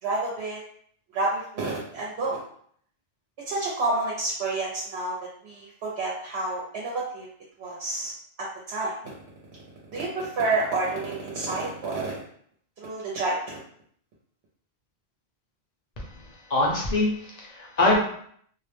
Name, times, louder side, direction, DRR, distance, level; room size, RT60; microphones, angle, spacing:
voice 1, 0.0-0.6 1.1-2.4 3.5-5.2 5.4-7.3 7.6-8.1 8.7-8.9 9.9-12.2 12.8-13.6, right 2 dB, 75° right, -4 dB, 0.8 m, -29 dB
voice 2, 16.5-18.0, left 2 dB, 45° left, -2 dB, 0.6 m, -23 dB
2.4 x 2.0 x 3.0 m, 0.63 s
omnidirectional pair, 1.1 m